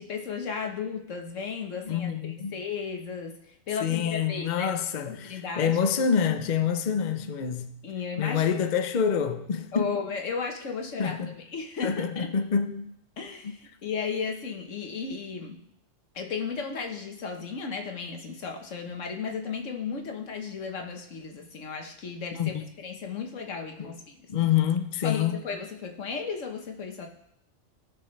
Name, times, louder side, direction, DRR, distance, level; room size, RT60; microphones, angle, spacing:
voice 1, 0.0-4.7 5.0-5.8 7.8-8.4 9.7-11.2 11.5-12.3 13.2-15.6 16.1-24.2 25.0-27.1, left 5 dB, 90° left, 1.6 m, -34 dB
voice 2, 1.9-2.5 3.8-7.8 8.2-10.0 11.0-11.4 11.8-12.9 13.4-13.5 22.3-22.7 23.8-23.9 24.3-25.4, left 7 dB, 45° left, 0.7 m, -27 dB
18.0 x 6.3 x 3.3 m
omnidirectional pair, 1.3 m